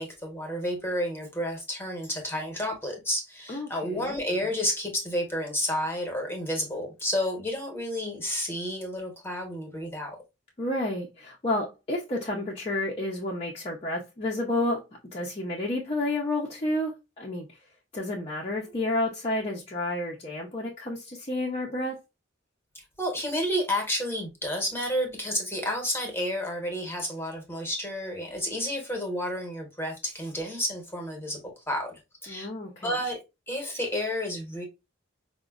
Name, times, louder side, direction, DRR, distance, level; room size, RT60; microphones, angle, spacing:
voice 1, 0.0-10.2 23.0-32.5 32.8-33.2 33.5-34.6, equal, 10° left, 0.9 m, -31 dB
voice 2, 3.5-4.2 10.6-14.8 15.1-17.6 17.9-22.0 32.3-32.9, left 1 dB, 30° left, 0.5 m, -30 dB
4.8 x 2.1 x 2.3 m
head